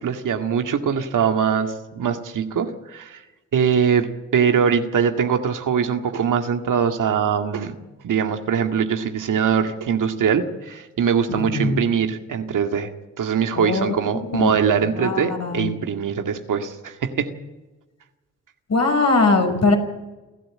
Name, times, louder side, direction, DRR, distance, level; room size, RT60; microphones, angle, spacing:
voice 1, 0.0-3.2 3.5-7.8 8.0-12.9 13.2-17.3, right 7 dB, 60° right, 6 dB, 2.0 m, -22 dB
voice 2, 11.3-11.8 13.6-14.0 14.3-14.5 14.9-15.7 18.7-19.7, left 3 dB, 45° left, 4 dB, 6.0 m, -20 dB
29.0 x 12.0 x 7.7 m, 1.1 s
hypercardioid pair, 45°, 35 cm